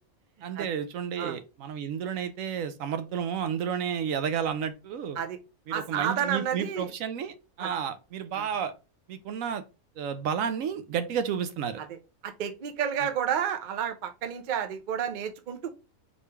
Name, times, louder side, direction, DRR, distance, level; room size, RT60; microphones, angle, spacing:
voice 1, 0.4-5.2 5.7-8.7 9.1-9.6 10.0-11.8 13.0-13.1, right 7 dB, 75° right, 1.0 m, -31 dB
voice 2, 5.7-6.9 7.6-7.7 8.4-8.5 12.2-15.7, right 8 dB, 50° right, 0.6 m, -30 dB
4.4 x 3.2 x 3.3 m
omnidirectional pair, 1.5 m